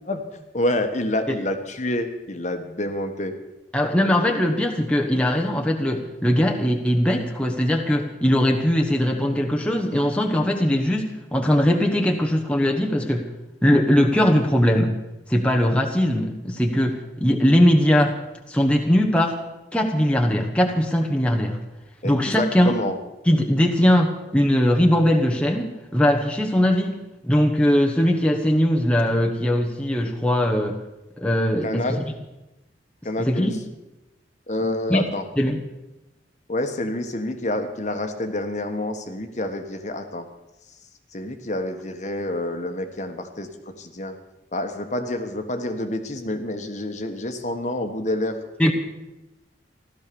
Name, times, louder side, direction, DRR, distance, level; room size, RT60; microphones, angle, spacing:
voice 1, 0.5-3.3 22.0-23.0 31.6-32.0 33.0-33.5 34.5-35.2 36.5-40.3 41.1-44.1 44.5-48.4, left 1 dB, 40° left, 7 dB, 1.4 m, -28 dB
voice 2, 3.7-13.3 13.6-15.0 15.3-18.2 18.5-19.4 19.7-21.6 22.0-22.7 23.3-30.8 31.2-32.1 33.2-33.5 34.9-35.0 35.4-35.6 48.6-48.7, equal, 5° left, 1 dB, 1.2 m, -20 dB
16.0 x 12.5 x 6.9 m, 0.99 s
head